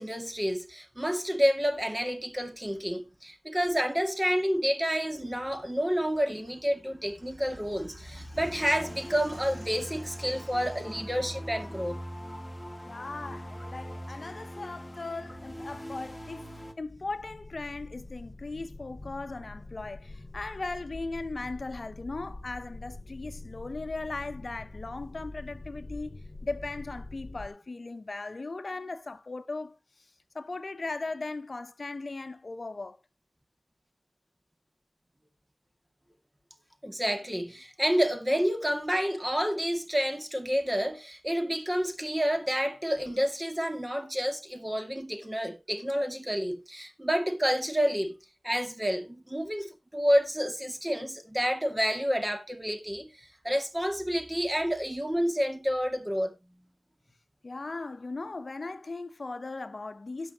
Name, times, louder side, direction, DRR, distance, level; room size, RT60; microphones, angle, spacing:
voice 1, 0.0-12.0 36.8-48.2 48.4-56.3, equal, 20° right, 2.1 m, -29 dB
sound 1, 8.3-16.7, equal, 15° left, 1.7 m, -41 dB
voice 2, 12.8-16.5 16.8-30.1 30.3-33.0 57.4-60.3, left 3 dB, 60° left, 0.7 m, -38 dB
sound 2, 16.8-27.5, left 2 dB, 40° left, 4.7 m, -45 dB
17.5 x 6.3 x 2.9 m
wide cardioid pair, 60°, 0 cm